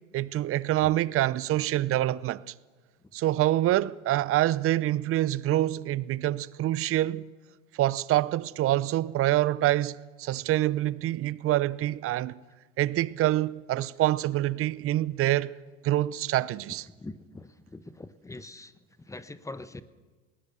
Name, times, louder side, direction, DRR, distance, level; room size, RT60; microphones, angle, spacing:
voice 1, 0.1-2.5 3.1-7.3 7.8-12.4 12.8-15.5 15.8-16.9, right 14 dB, 35° right, 0.7 m, -26 dB
voice 2, 17.0-18.7 19.1-19.8, left 2 dB, 10° left, 1.2 m, -42 dB
20.0 x 19.0 x 6.9 m
hypercardioid pair, 85°, 38 cm